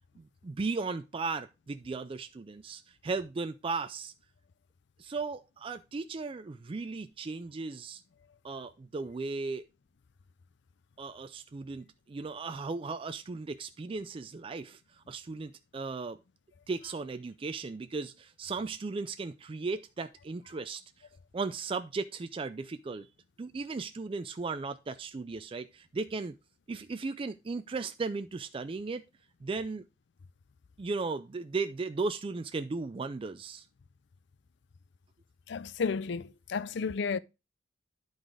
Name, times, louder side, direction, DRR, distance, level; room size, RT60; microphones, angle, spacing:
voice 1, 0.2-4.1 5.0-8.0 8.4-9.7 11.0-14.8 15.1-16.2 16.7-20.8 21.3-23.1 23.4-26.4 26.7-29.1 29.4-29.9 30.8-33.6, right 4 dB, 30° right, 0.3 m, -36 dB
voice 2, 35.5-37.2, left 5 dB, 60° left, 0.5 m, -32 dB
11.0 x 4.0 x 4.8 m
head